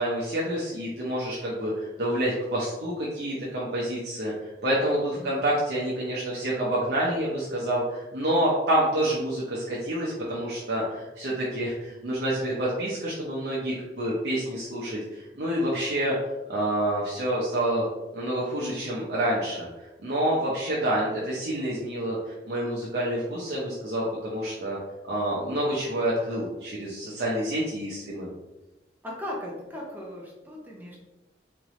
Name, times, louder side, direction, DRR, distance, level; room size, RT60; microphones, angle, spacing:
voice 1, 0.0-16.1 16.5-17.8 18.1-19.7 20.0-24.8 25.1-28.3, right 1 dB, 65° right, -6 dB, 0.8 m, -28 dB
voice 2, 29.0-31.0, left 1 dB, 10° right, -3 dB, 0.7 m, -37 dB
3.8 x 3.3 x 3.1 m, 1.1 s
head